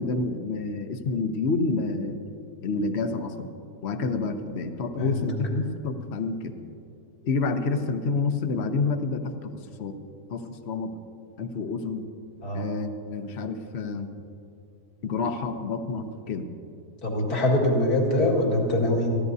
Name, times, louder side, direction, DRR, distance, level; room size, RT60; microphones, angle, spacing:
voice 1, 0.0-2.2 2.6-3.5 3.8-6.6 7.2-10.0 10.3-11.0 11.4-12.0 12.5-14.1 15.0-16.5, left 3 dB, 50° left, 7 dB, 1.0 m, -28 dB
voice 2, 17.0-19.1, left 1 dB, 70° left, -2 dB, 2.6 m, -23 dB
23.0 x 14.5 x 2.7 m, 2.6 s
omnidirectional pair, 1.7 m